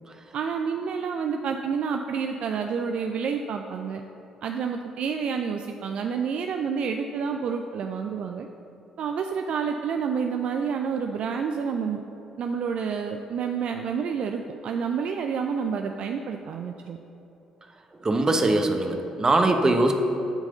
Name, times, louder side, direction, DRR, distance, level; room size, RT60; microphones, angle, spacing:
voice 1, 0.3-4.0 4.4-8.5 9.0-12.0 12.4-17.0, right 6 dB, 55° right, 4 dB, 0.4 m, -29 dB
voice 2, 18.0-19.9, right 2 dB, 30° right, 5 dB, 1.0 m, -21 dB
7.9 x 4.7 x 6.6 m, 2.9 s
hypercardioid pair, 45°, 2 cm